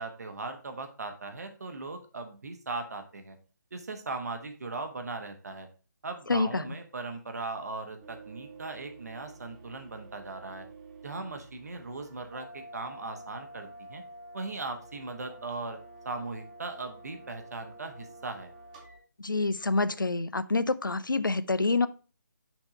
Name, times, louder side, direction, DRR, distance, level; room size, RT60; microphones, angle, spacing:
voice 1, 0.0-3.4 3.7-5.7 6.0-10.7 11.0-14.0 14.3-15.8 16.0-18.5, right 3 dB, 50° right, 6 dB, 1.1 m, -38 dB
voice 2, 6.3-6.6 19.2-21.9, left 3 dB, 80° left, 16 dB, 0.5 m, -27 dB
sound 1, 8.0-19.0, right 2 dB, 20° right, 1.2 m, -49 dB
6.0 x 3.6 x 4.5 m, 0.35 s
figure-of-eight pair, 145°, 11 cm